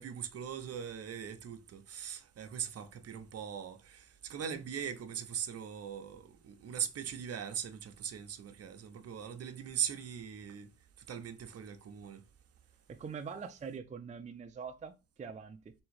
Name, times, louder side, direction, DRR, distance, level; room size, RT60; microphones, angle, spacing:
voice 1, 0.0-4.0 4.3-10.7 11.1-12.2, right 8 dB, 55° right, 0.8 m, -40 dB
voice 2, 12.9-15.7, right 6 dB, 25° right, 0.4 m, -44 dB
3.5 x 3.1 x 4.7 m
cardioid pair, 90°, 30 cm